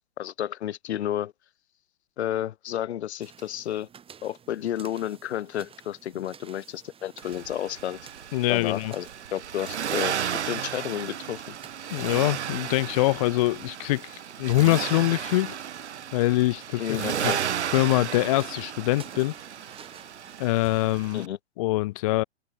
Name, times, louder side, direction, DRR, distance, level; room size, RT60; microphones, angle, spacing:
voice 1, 0.0-1.3 2.2-3.9 4.2-8.0 8.5-10.2 10.4-11.4 16.8-17.4 21.1-21.4, left 11 dB, 75° left, 0.8 m, -31 dB
sound 1, 3.2-21.1, right 7 dB, 15° right, 3.0 m, -52 dB
Accelerating revving vroom, 7.2-21.3, right 9 dB, 80° right, 1.2 m, -34 dB
voice 2, 8.3-8.9 11.9-15.6 16.1-17.0 17.2-17.3 17.7-19.3 20.4-21.3 21.6-22.2, left 18 dB, 35° left, 0.4 m, -24 dB
hypercardioid pair, 125°, 34 cm